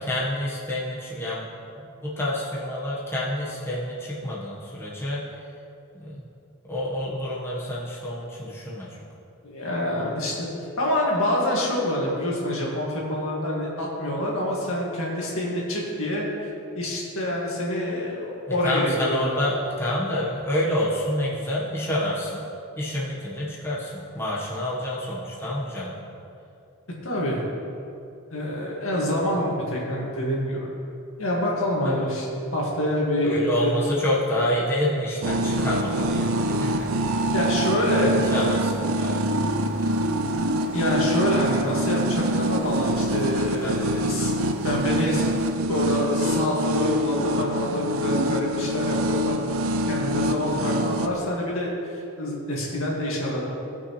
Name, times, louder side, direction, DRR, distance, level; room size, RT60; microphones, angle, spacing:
voice 1, 0.0-1.5 1.8-5.3 6.0-6.2 6.7-9.0 10.0-10.1 18.6-22.4 22.8-26.0 31.8-32.0 33.2-37.3 38.3-39.2 43.6-43.8 45.2-45.4 50.7-50.9, left 1 dB, 10° left, -7 dB, 1.3 m, -28 dB
voice 2, 9.4-10.5 10.8-16.5 16.7-19.4 27.0-27.4 28.3-30.7 31.2-34.0 37.3-38.2 40.7-45.2 45.7-49.6 49.8-53.5, left 1 dB, 70° left, -4 dB, 2.1 m, -26 dB
sound 1, 35.2-51.1, right 1 dB, 70° right, 0.5 m, -25 dB
sound 2, 35.5-45.5, equal, 5° right, 0.8 m, -38 dB
17.0 x 5.9 x 3.2 m, 2.7 s
head